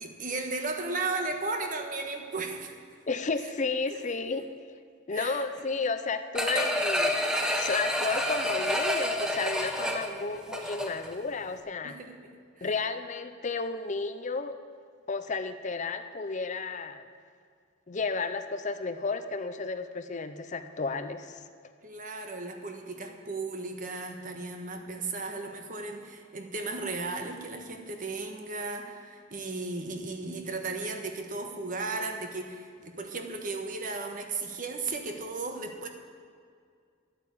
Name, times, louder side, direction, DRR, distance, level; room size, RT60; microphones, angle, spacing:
voice 1, 0.0-2.8 3.9-4.0 5.1-5.7 10.0-10.2 11.8-12.2 12.6-12.7 21.8-35.9, right 3 dB, 45° right, 4 dB, 1.4 m, -35 dB
voice 2, 3.1-4.8 5.1-7.2 7.6-12.0 12.6-14.6 15.1-17.1 17.9-21.4, left 4 dB, 40° left, 10 dB, 0.6 m, -32 dB
sound 1, 6.3-11.1 11.5-11.6, equal, 5° right, 1.0 m, -29 dB
12.0 x 8.5 x 8.4 m, 2.2 s
head